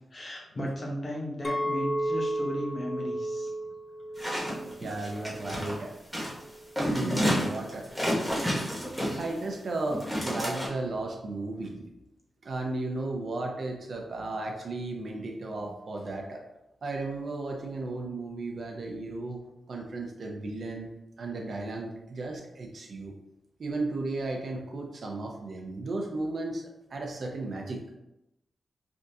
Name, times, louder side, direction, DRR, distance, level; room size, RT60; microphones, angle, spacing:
voice 1, 0.1-3.5, equal, 35° left, -3 dB, 0.9 m, -35 dB
Chink clink, 1.4-5.8 6.3-6.6, right 1 dB, 20° left, 0.3 m, -34 dB
sound 1, 4.2-5.7 6.1-6.4 6.8-9.5 9.9-10.7, equal, ahead, 1.0 m, -30 dB
voice 2, 4.8-6.0 6.8-7.9 8.8-11.9 12.4-16.4 16.8-19.4 19.7-20.9 21.2-23.1 23.6-26.6 26.9-27.8, right 2 dB, 55° right, 2 dB, 0.6 m, -34 dB
3.4 x 2.6 x 2.6 m, 0.89 s
wide cardioid pair, 125°, 0 cm